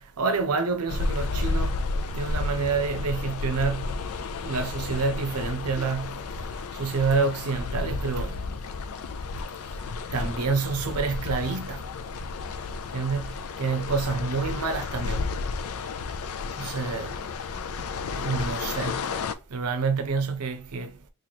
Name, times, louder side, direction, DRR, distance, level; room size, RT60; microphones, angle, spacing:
voice 1, 0.0-1.7 2.1-4.0 4.4-6.3 6.7-8.4 10.1-11.9 12.9-15.3 16.6-17.2 18.1-19.1 19.5-21.0, right 4 dB, 90° right, 0.7 m, -28 dB
sound 1, 0.9-19.3, left 3 dB, 75° left, 0.4 m, -32 dB
3.0 x 2.4 x 4.1 m
head